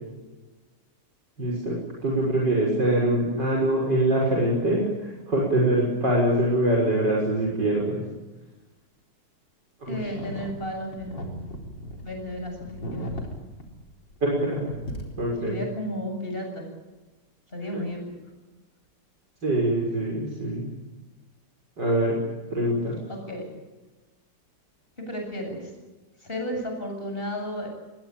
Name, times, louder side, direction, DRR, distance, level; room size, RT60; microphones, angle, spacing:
voice 1, 1.4-8.0 9.8-10.0 14.2-14.6 15.2-15.6 17.7-17.8 19.4-20.7 21.8-22.2 22.5-23.0, right 1 dB, 75° right, -3 dB, 6.9 m, -24 dB
voice 2, 9.9-11.4 12.0-13.2 15.4-16.7 17.5-18.0 23.1-23.5 25.0-25.7 26.2-27.7, equal, 30° left, 4 dB, 8.1 m, -33 dB
sound 1, 10.0-14.3 14.6-15.4, equal, 90° left, 4.9 m, -37 dB
24.5 x 22.5 x 8.9 m, 1.2 s
omnidirectional pair, 1.9 m